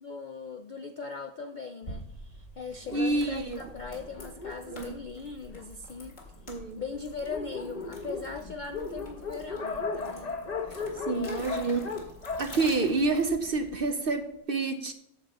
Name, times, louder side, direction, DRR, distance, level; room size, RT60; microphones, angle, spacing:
voice 1, 0.0-6.2 6.8-10.4 11.1-11.4, left 4 dB, 80° left, 0.4 m, -40 dB
sound 1, 1.8-13.9, left 1 dB, 60° left, 2.4 m, -47 dB
Dog, 2.8-5.8 6.5-6.6 6.9-7.0 7.2-13.6, left 4 dB, 35° left, 0.8 m, -37 dB
voice 2, 2.9-3.6 4.7-4.9 6.5-6.8 10.7-11.9 12.4-14.9, right 3 dB, 55° right, 0.6 m, -28 dB
9.8 x 7.0 x 4.1 m
omnidirectional pair, 1.5 m